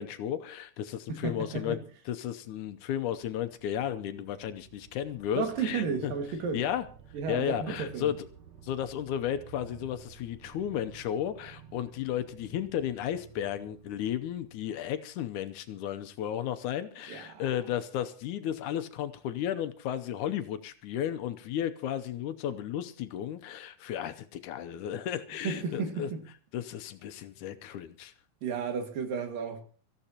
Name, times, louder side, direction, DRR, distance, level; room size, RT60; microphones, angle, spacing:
voice 1, 0.0-1.8 2.1-6.1 6.5-6.9 7.3-8.3 8.6-26.1 26.5-28.1, left 10 dB, 75° left, 2.1 m, -34 dB
voice 2, 1.1-1.8 5.4-6.6 7.1-8.1 17.1-17.4 25.4-26.2 28.4-29.6, right 5 dB, 85° right, 3.7 m, -33 dB
sound 1, 2.5-15.3, right 7 dB, 50° right, 1.3 m, -54 dB
24.5 x 14.5 x 2.9 m
omnidirectional pair, 3.8 m